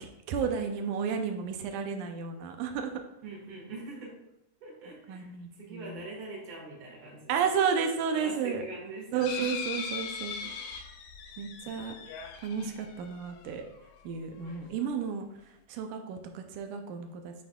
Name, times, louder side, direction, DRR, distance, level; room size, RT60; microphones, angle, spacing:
voice 1, 0.3-2.9 5.1-6.0 7.3-8.6 9.1-10.4 11.4-11.9 12.4-13.6 14.0-15.3 15.7-17.3, right 6 dB, 85° right, 5 dB, 2.1 m, -32 dB
voice 2, 3.2-4.1 4.6-5.3 5.6-7.4 8.1-9.9 10.4-10.5 14.4-14.7, right 2 dB, 40° right, -3 dB, 1.6 m, -43 dB
sound 1, 9.2-13.8 14.5-14.6 14.8-14.9, left 6 dB, 90° left, 2.1 m, -40 dB
8.6 x 5.1 x 2.3 m, 0.84 s
omnidirectional pair, 3.4 m